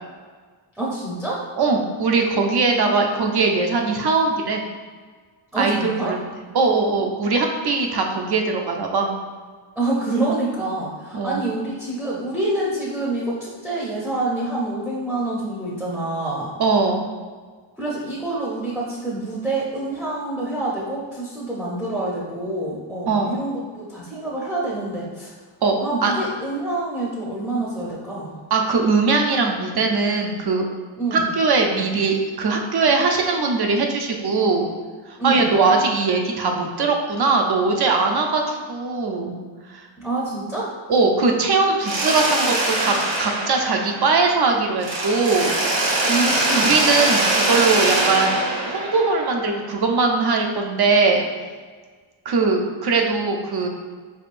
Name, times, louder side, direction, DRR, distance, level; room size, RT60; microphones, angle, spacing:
voice 1, 0.7-1.4 2.8-2.9 5.5-6.2 9.8-16.5 17.8-25.3 25.8-28.4 31.0-31.3 35.2-35.5 40.0-40.7 46.0-46.7, right 2 dB, ahead, -6 dB, 0.6 m, -27 dB
voice 2, 1.6-4.6 5.6-6.3 6.5-9.2 11.1-11.4 16.6-17.1 23.1-23.4 25.6-26.1 28.5-30.6 31.1-34.7 35.1-39.4 39.7-39.8 40.9-45.6 46.6-48.4 48.7-51.2 52.3-53.7, right 4 dB, 55° right, 2 dB, 0.6 m, -20 dB
Mechanisms, 41.8-44.4 44.8-49.7, right 2 dB, 70° right, 1.1 m, -22 dB
4.7 x 3.5 x 2.5 m, 1.5 s
wide cardioid pair, 140°, 47 cm